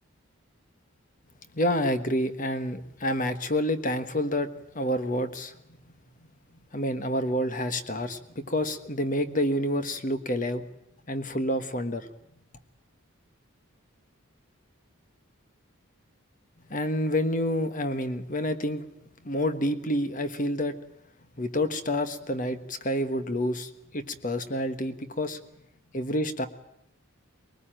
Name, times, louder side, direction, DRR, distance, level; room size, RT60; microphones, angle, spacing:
voice 1, 1.5-4.5 4.7-5.5 6.7-10.6 11.1-12.1 16.7-18.9 19.2-20.8 21.4-25.4 25.9-26.5, equal, 35° left, 10 dB, 1.4 m, -28 dB
21.5 x 19.5 x 9.0 m, 0.79 s
head